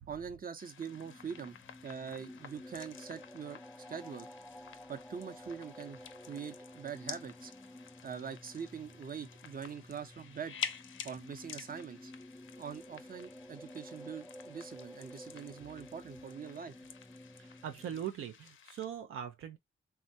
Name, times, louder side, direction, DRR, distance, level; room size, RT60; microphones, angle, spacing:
voice 1, 0.1-1.6 1.8-3.6 3.9-4.3 4.9-6.0 6.3-7.5 8.0-10.6 11.0-12.1 12.6-16.7, right 7 dB, 45° right, 0.7 m, -43 dB
sound 1, 0.6-18.9, left 8 dB, 70° left, 0.5 m, -49 dB
sound 2, 0.7-18.1, left 1 dB, 5° left, 0.3 m, -52 dB
voice 2, 17.4-19.6, right 9 dB, 80° right, 0.4 m, -41 dB
3.4 x 2.1 x 2.7 m
cardioid pair, 65°, 21 cm